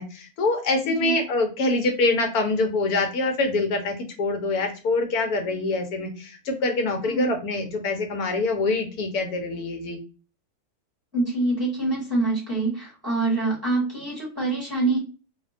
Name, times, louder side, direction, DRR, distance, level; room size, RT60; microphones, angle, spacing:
voice 1, 0.0-10.0, left 3 dB, 80° left, 4 dB, 1.1 m, -25 dB
voice 2, 11.1-15.0, right 2 dB, 10° right, -5 dB, 0.9 m, -25 dB
2.7 x 2.1 x 2.4 m, 0.34 s
omnidirectional pair, 1.6 m